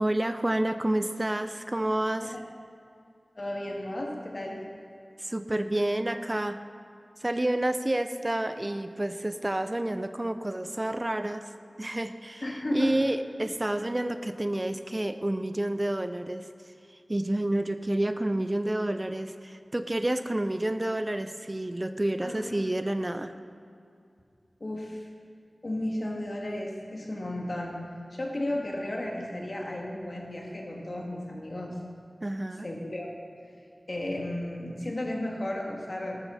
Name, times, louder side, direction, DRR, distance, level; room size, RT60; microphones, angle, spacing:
voice 1, 0.0-2.3 5.2-6.6 7.2-11.5 11.8-12.4 12.7-16.5 17.1-23.3 32.2-32.7, right 1 dB, 30° right, 10 dB, 0.6 m, -29 dB
voice 2, 3.4-4.6 12.4-12.9 22.2-22.5 24.6-25.1 25.6-27.8 28.1-31.7 32.6-33.1 33.9-36.2, left 1 dB, 55° left, -1 dB, 2.4 m, -33 dB
13.0 x 12.5 x 4.2 m, 2.4 s
wide cardioid pair, 40°, 0 cm